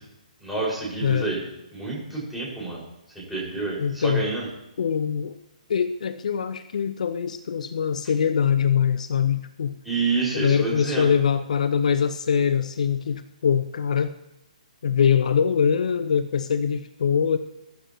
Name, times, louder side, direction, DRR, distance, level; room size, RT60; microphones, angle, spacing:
voice 1, 0.4-1.4 1.7-2.8 3.1-4.5 9.8-11.1, right 4 dB, ahead, -5 dB, 5.8 m, -28 dB
voice 2, 3.8-4.3 4.8-5.4 5.7-9.7 10.3-14.2 14.8-17.4, left 7 dB, 60° left, 11 dB, 0.7 m, -23 dB
22.0 x 12.0 x 3.1 m, 0.90 s
hypercardioid pair, 145°, 4 cm